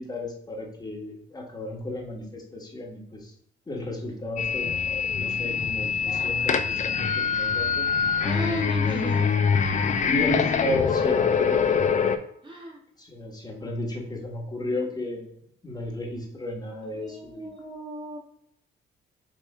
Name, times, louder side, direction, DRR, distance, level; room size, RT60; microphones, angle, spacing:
voice 1, 0.0-3.3 3.7-4.7 5.1-7.8 10.0-11.9 13.0-15.3 15.6-17.5, left 1 dB, 20° left, 0 dB, 1.2 m, -33 dB
sound 1, 4.4-12.2, left 6 dB, 40° left, 0.4 m, -24 dB
voice 2, 8.2-9.3 12.4-12.8 16.9-18.2, right 1 dB, 25° right, -2 dB, 1.5 m, -35 dB
4.2 x 3.1 x 3.3 m, 0.73 s
cardioid pair, 90°, 20 cm